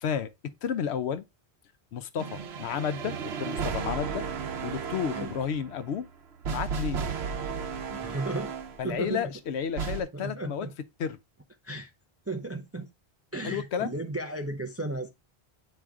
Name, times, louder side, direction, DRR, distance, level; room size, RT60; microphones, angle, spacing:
voice 1, 0.0-1.2 1.9-4.3 4.6-6.1 6.5-7.1 8.8-10.7 11.0-11.2 13.4-13.9, left 8 dB, 85° left, 0.9 m, -32 dB
sound 1, 2.2-8.9 9.8-10.0, right 6 dB, 80° right, 1.0 m, -34 dB
voice 2, 7.9-8.5 8.8-9.3 10.1-10.7 11.6-11.9 12.3-12.9 13.3-15.1, right 2 dB, 25° right, 0.3 m, -34 dB
8.8 x 3.2 x 3.5 m
omnidirectional pair, 1.1 m